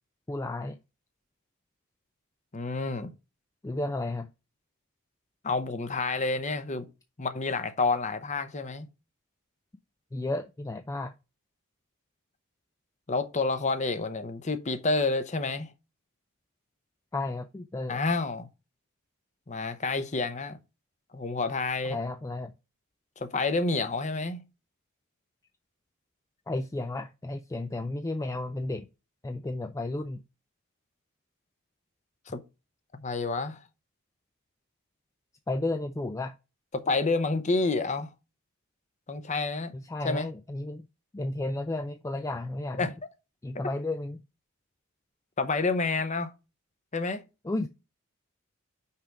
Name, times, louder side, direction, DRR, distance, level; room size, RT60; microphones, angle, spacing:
voice 1, 0.3-0.8 3.6-4.3 10.1-11.1 17.1-18.0 21.9-22.5 26.5-28.9 29.2-30.2 35.5-36.3 39.7-40.8 41.1-42.9 43.4-44.2 47.4-47.7, left 2 dB, 15° left, 0.3 m, -33 dB
voice 2, 2.5-3.1 5.4-6.9 7.2-8.9 13.1-15.7 17.9-18.5 19.5-20.6 21.1-22.0 23.2-24.4 32.3-32.4 32.9-33.6 36.7-38.1 39.1-39.7 40.0-40.3 42.8-42.9 45.4-46.3 46.9-47.2, left 3 dB, 35° left, 0.8 m, -29 dB
5.7 x 5.1 x 4.6 m
head